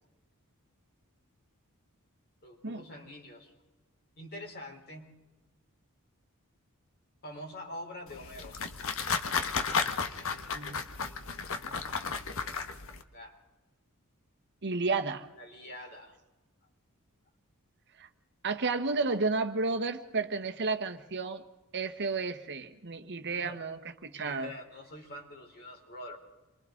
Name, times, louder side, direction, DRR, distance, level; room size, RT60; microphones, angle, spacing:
voice 1, 2.4-3.5 4.2-5.2 7.2-8.6 13.1-13.4 15.4-16.2 23.4-23.6 24.1-26.2, left 1 dB, 45° left, 1 dB, 4.1 m, -45 dB
sound 1, 8.1-13.0, left 5 dB, 65° left, 1.2 m, -33 dB
voice 2, 14.6-15.3 18.0-18.1 18.4-21.4 21.7-24.5, right 3 dB, 55° right, 7 dB, 1.2 m, -32 dB
28.0 x 24.0 x 3.9 m, 1.1 s
head